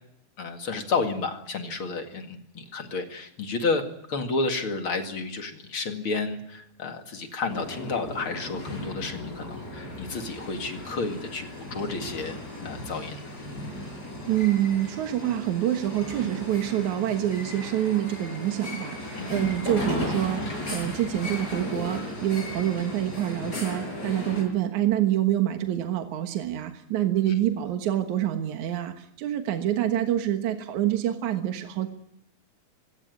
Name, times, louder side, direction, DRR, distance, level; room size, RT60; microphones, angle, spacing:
voice 1, 0.4-12.4 12.6-13.3 19.1-19.3 27.2-27.4, left 4 dB, 40° left, 5 dB, 2.1 m, -31 dB
sound 1, 7.5-24.4, left 1 dB, 20° left, 6.6 m, -36 dB
voice 2, 14.3-31.9, right 12 dB, 60° right, 6 dB, 2.1 m, -26 dB
23.5 x 17.0 x 9.4 m, 0.79 s
omnidirectional pair, 5.0 m